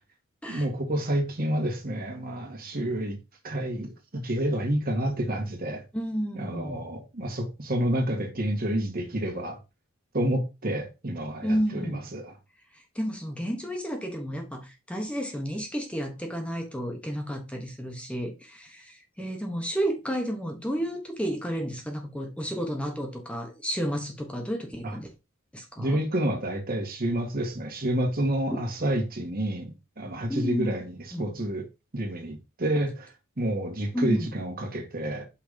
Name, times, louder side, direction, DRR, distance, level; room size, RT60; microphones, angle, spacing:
voice 1, 0.5-3.2 3.4-5.8 6.3-9.6 10.1-12.3 24.8-25.0 25.8-30.8 31.2-31.6 31.9-35.3, right 1 dB, 45° right, 1.7 m, -29 dB
voice 2, 5.9-6.8 11.4-12.1 12.7-25.1 25.5-26.0 28.5-28.6 30.3-30.7 31.1-31.3 33.9-34.4, equal, 5° left, 1.0 m, -31 dB
5.7 x 4.0 x 5.1 m
head